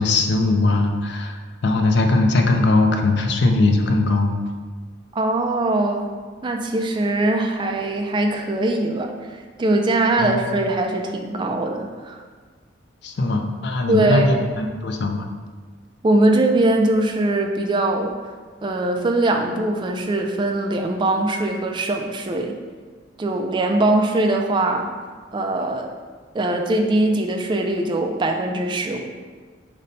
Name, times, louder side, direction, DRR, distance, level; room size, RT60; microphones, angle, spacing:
voice 1, 0.0-1.4 1.6-4.3 10.2-10.4 13.0-15.3, left 2 dB, 60° left, 4 dB, 0.4 m, -19 dB
voice 2, 5.1-6.1 6.4-12.2 13.9-14.3 16.0-18.1 18.6-22.6 23.2-24.9 25.3-25.9 26.3-29.0, right 2 dB, 25° right, 3 dB, 0.3 m, -21 dB
5.2 x 2.1 x 4.0 m, 1.5 s
head